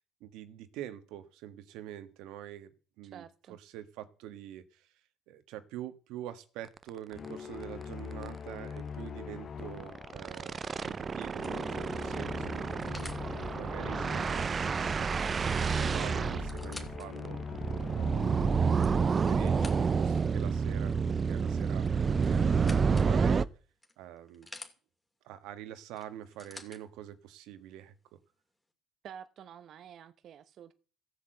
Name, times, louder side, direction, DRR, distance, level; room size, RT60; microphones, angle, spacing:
voice 1, 0.2-4.9 5.3-15.1 15.3-17.6 17.9-20.9 21.2-22.0 22.3-23.5 24.0-24.5 25.2-28.2, right 12 dB, 85° right, 1.5 m, -46 dB
voice 2, 3.0-3.6 29.0-30.7, right 8 dB, 55° right, 0.9 m, -49 dB
sound 1, 6.8-6.9 7.2-7.3 7.6-7.8 8.1-8.3 9.6-23.4, right 5 dB, 30° right, 0.6 m, -29 dB
sound 2, 7.1-20.2, left 6 dB, 40° left, 0.8 m, -43 dB
sound 3, 10.3-10.6 11.2-13.3 15.3-15.4 15.7-15.8 16.3-17.1 17.7-17.8 18.5-20.1 21.8-23.1 23.8-24.7 26.0-26.8 27.7-27.8, left 2 dB, 10° left, 2.5 m, -49 dB
15.5 x 8.3 x 7.8 m
cardioid pair, 125°, 0 cm